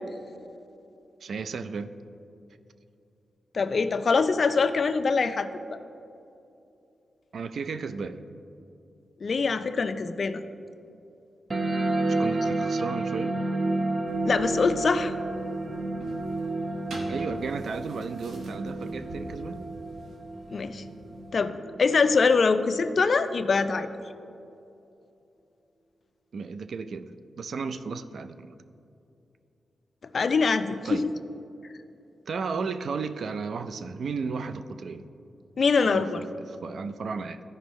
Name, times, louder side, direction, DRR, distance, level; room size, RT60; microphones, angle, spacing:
voice 1, 1.2-1.9 7.3-8.3 12.0-13.4 17.1-19.6 26.3-28.6 30.8-31.1 32.3-35.1 35.8-37.4, right 5 dB, 70° right, 10 dB, 0.4 m, -34 dB
voice 2, 3.5-5.8 9.2-10.4 14.2-15.1 20.5-20.8 21.3-23.9 30.1-31.1 35.6-36.2, left 4 dB, 55° left, 10 dB, 0.4 m, -24 dB
sound 1, 11.5-22.5, right 2 dB, 35° right, 0.8 m, -31 dB
sound 2, 14.1-21.3, right 1 dB, 90° right, 1.2 m, -46 dB
14.0 x 5.3 x 3.1 m, 2.7 s
cardioid pair, 80°, 0 cm